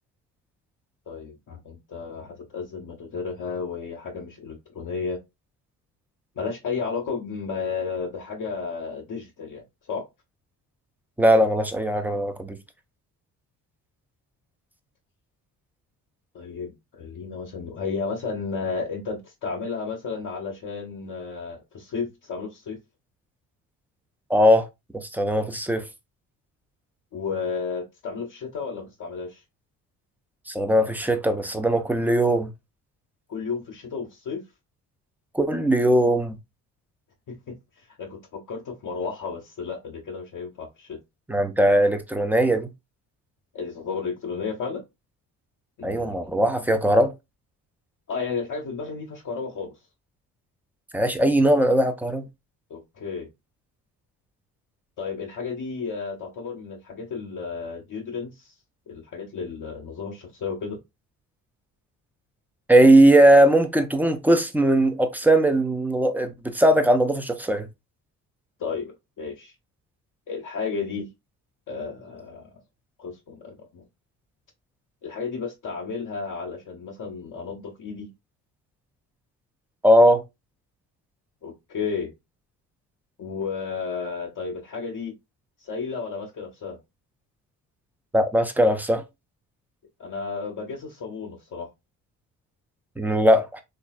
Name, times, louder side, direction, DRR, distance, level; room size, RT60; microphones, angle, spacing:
voice 1, 1.1-5.2 6.4-10.0 16.3-22.8 27.1-29.4 33.3-34.4 37.3-37.5 37.9-41.0 43.5-44.8 45.8-46.3 48.1-49.7 52.7-53.3 55.0-58.5 58.9-60.8 68.6-69.5 70.3-71.1 71.7-72.5 73.0-73.8 75.0-78.1 81.4-82.1 83.2-85.1 85.6-86.8 90.0-91.7, left 5 dB, 45° left, 0.7 m, -33 dB
voice 2, 11.2-12.6 24.3-24.7 24.9-25.9 30.5-32.5 35.3-36.4 41.3-42.7 45.8-47.1 50.9-52.3 62.7-67.7 79.8-80.2 88.1-89.0 93.0-93.6, right 1 dB, 5° right, 0.5 m, -19 dB
3.1 x 2.5 x 2.3 m
hypercardioid pair, 50°, 46 cm